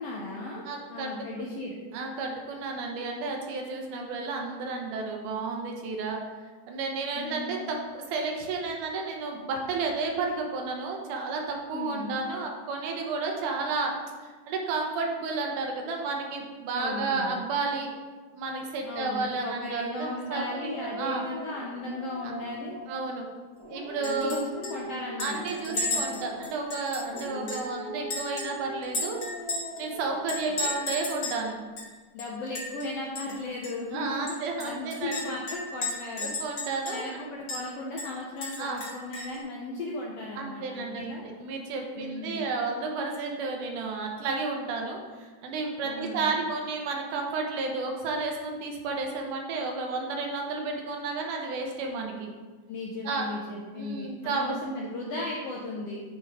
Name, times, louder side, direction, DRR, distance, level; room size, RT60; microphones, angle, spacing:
voice 1, 0.0-1.7 7.1-7.5 11.7-12.2 16.7-17.3 18.9-22.7 24.0-26.3 27.1-27.6 30.6-30.7 32.1-36.3 36.9-41.2 41.9-42.5 45.8-46.4 52.7-56.0, left 2 dB, 80° left, -3 dB, 1.4 m, -36 dB
voice 2, 0.7-1.5 1.9-6.2 6.7-13.9 14.2-17.9 18.3-21.2 22.2-22.3 22.9-23.3 23.7-24.6 25.2-29.2 29.8-31.6 33.9-35.3 36.2-37.2 38.6-38.8 40.4-52.3 53.0-53.3 53.7-54.4, right 3 dB, 80° right, 1 dB, 2.4 m, -32 dB
Dog, 20.3-23.1 23.6-26.7 27.1-30.6, right 1 dB, 45° right, 0.8 m, -41 dB
Chink clink, 24.0-24.4 24.6-24.7 25.2-27.7 28.1-29.8 30.3-31.4 31.8-31.9 32.2-32.9 33.2-33.3 33.6-33.7 34.3-37.2 37.5-37.6 38.0-39.4, left 2 dB, 50° left, 2.3 m, -34 dB
8.8 x 4.6 x 3.5 m, 1.4 s
omnidirectional pair, 3.6 m